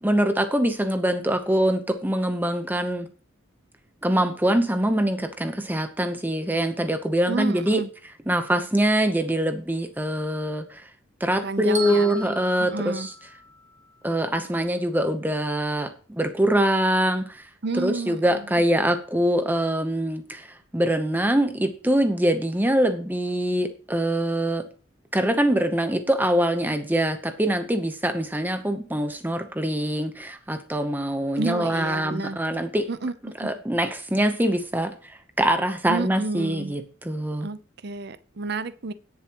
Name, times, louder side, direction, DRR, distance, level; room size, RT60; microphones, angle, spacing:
voice 1, 0.0-3.1 4.0-7.8 8.3-10.9 11.2-13.1 14.0-17.5 17.8-24.7 25.1-32.9 33.4-37.5, right 1 dB, 10° right, 0.8 m, -24 dB
voice 2, 7.3-7.9 11.4-12.3 12.6-13.1 17.6-18.4 31.4-32.4 32.9-33.5 35.9-36.7 37.4-38.9, right 3 dB, 55° right, 0.7 m, -31 dB
Bell, 11.7-13.9, right 3 dB, 35° right, 2.0 m, -37 dB
17.5 x 7.1 x 3.0 m
head